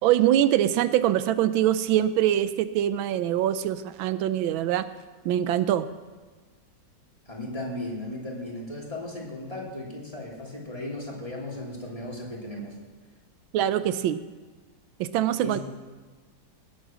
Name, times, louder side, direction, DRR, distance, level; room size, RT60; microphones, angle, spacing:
voice 1, 0.0-4.9 5.2-5.9 13.5-14.2 15.0-15.6, right 11 dB, 90° right, 13 dB, 1.4 m, -23 dB
voice 2, 7.3-12.8 15.4-15.6, left 1 dB, 15° left, -3 dB, 3.0 m, -36 dB
18.5 x 8.1 x 6.1 m, 1.4 s
omnidirectional pair, 2.2 m